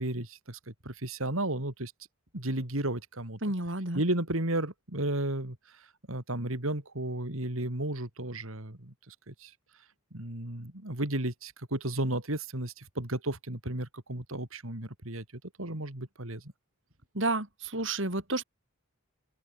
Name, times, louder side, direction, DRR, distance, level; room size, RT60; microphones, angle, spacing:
voice 1, 0.0-1.9 2.3-3.4 3.9-9.5 10.1-16.5, right 1 dB, 75° right, 3.7 m, -34 dB
voice 2, 3.4-4.0 17.1-18.4, right 2 dB, 60° right, 4.9 m, -31 dB
open air
head